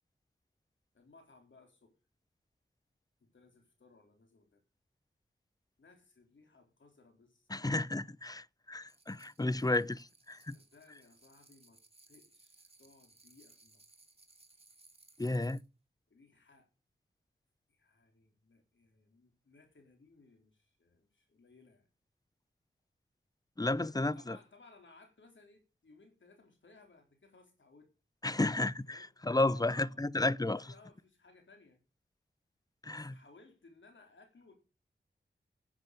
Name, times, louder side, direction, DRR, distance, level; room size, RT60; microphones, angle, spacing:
voice 1, 0.9-2.0 3.2-4.6 5.8-7.6 10.4-11.8 12.1-13.8 16.1-16.7 17.7-21.9 23.8-27.9 28.9-29.1 29.4-30.1 30.4-31.8 32.8-34.5, left 3 dB, 75° left, 3.8 m, -62 dB
voice 2, 7.5-10.6 15.2-15.6 23.6-24.4 28.2-30.6 32.8-33.2, left 2 dB, 20° left, 0.7 m, -32 dB
sound 1, 8.9-15.7, right 2 dB, 30° right, 2.4 m, -63 dB
10.5 x 8.2 x 9.1 m
cardioid pair, 45°, 20 cm